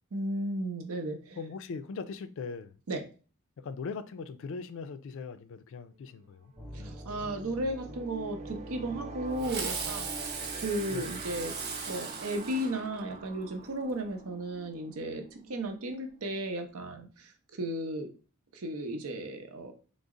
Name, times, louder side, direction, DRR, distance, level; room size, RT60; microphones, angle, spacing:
voice 1, 0.1-1.4 2.9-3.0 6.7-11.5 11.9-15.2 15.5-17.3 17.6-18.1 18.5-19.7, right 1 dB, 85° right, 0.7 m, -35 dB
voice 2, 1.4-2.8 3.6-6.5 10.9-11.1, left 5 dB, 65° left, 0.4 m, -40 dB
sound 1, 6.1-6.2 6.5-17.1, right 4 dB, 30° right, 0.3 m, -48 dB
sound 2, 6.6-15.7, right 1 dB, 5° right, 0.8 m, -46 dB
Fireworks, 9.4-13.3, right 5 dB, 50° right, 0.8 m, -38 dB
3.9 x 2.0 x 3.6 m
head